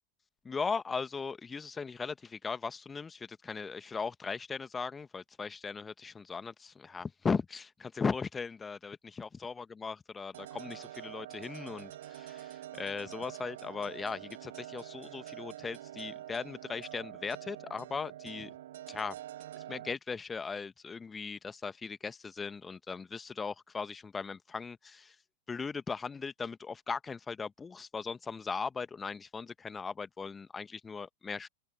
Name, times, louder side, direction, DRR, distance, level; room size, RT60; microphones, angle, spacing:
voice 1, 0.4-18.5 18.9-19.1 19.6-25.2 25.5-31.5, left 5 dB, 15° left, 1.4 m, -38 dB
sound 1, 10.3-20.0, right 13 dB, 60° right, 2.0 m, -46 dB
open air
figure-of-eight pair, 90°, 0 cm